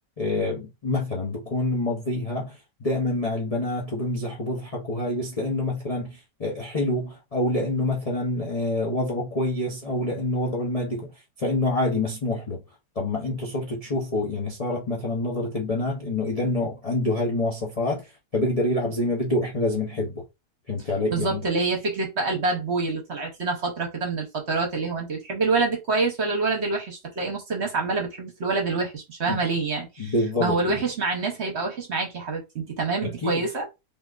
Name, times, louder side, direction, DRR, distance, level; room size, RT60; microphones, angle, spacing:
voice 1, 0.2-12.6 12.9-20.2 20.7-21.4 29.3-29.4 30.0-30.9 33.0-33.4, left 2 dB, 75° left, 0.3 m, -27 dB
voice 2, 21.1-30.1 30.4-33.7, right 3 dB, 50° right, 1.0 m, -26 dB
3.5 x 2.9 x 2.4 m
omnidirectional pair, 1.9 m